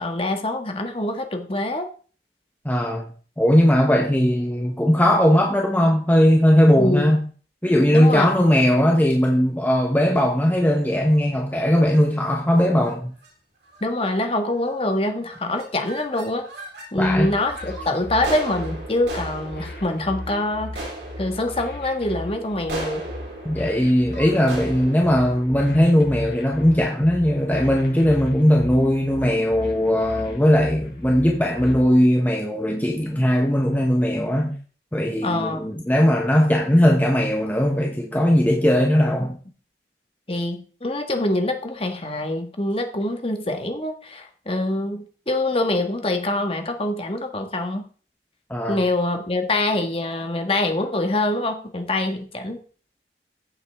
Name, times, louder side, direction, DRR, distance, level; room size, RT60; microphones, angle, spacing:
voice 1, 0.0-1.9 6.8-7.2 7.9-8.4 13.8-16.5 16.9-20.9 21.2-23.1 35.2-35.6 40.3-47.8 48.7-52.6, left 1 dB, 30° left, 1.6 m, -25 dB
voice 2, 2.6-3.1 3.4-7.3 7.6-13.1 17.0-17.3 23.4-34.6 34.9-39.3 48.5-48.8, equal, 10° left, 1.0 m, -19 dB
sound 1, 10.8-11.2 11.8-12.0 12.7-12.9 13.2-13.3 13.6-14.0 14.6-14.9 15.2-16.9 17.3-26.5, right 2 dB, 75° right, 3.7 m, -38 dB
sound 2, 17.0-31.8, left 1 dB, 55° left, 4.4 m, -37 dB
14.5 x 7.8 x 3.6 m
head